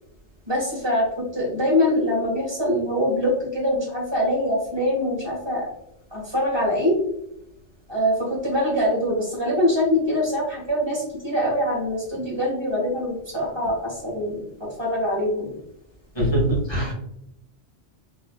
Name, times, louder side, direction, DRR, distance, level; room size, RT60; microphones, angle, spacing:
voice 1, 0.5-5.7 6.1-7.0 7.9-15.5, left 1 dB, 25° right, -4 dB, 1.5 m, -24 dB
voice 2, 16.1-16.9, right 1 dB, 25° left, -4 dB, 1.3 m, -22 dB
3.8 x 3.0 x 2.2 m, 0.78 s
omnidirectional pair, 1.2 m